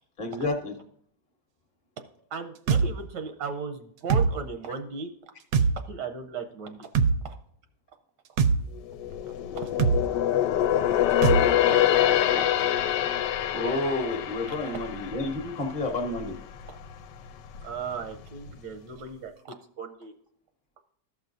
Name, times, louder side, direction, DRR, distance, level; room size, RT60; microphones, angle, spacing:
voice 1, 0.2-0.7 13.5-16.4, left 2 dB, 30° left, 3 dB, 1.0 m, -30 dB
voice 2, 2.3-5.1 5.9-6.9 7.2-7.3 9.5-9.7 14.5-14.6 17.6-20.1, right 5 dB, 85° right, 6 dB, 1.4 m, -36 dB
sound 1, 2.7-2.9 4.1-4.3 5.5-5.7 6.9-7.1 8.4-8.6 9.8-10.0 11.2-11.4, right 5 dB, 70° right, 0.9 m, -20 dB
sound 2, 8.8-16.3 16.7-16.9 17.4-18.2 18.5-18.6, left 11 dB, 90° left, 1.2 m, -25 dB
14.0 x 5.8 x 2.6 m, 0.66 s
omnidirectional pair, 1.9 m